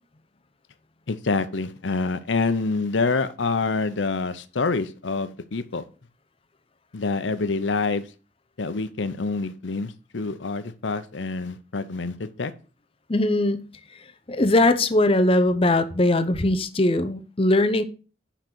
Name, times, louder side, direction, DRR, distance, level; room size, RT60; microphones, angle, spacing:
voice 1, 1.1-5.8 6.9-8.1 8.6-12.5, left 3 dB, 90° left, 0.7 m, -26 dB
voice 2, 13.1-13.7 14.3-17.8, left 2 dB, 30° left, 0.7 m, -20 dB
10.0 x 3.9 x 6.1 m
head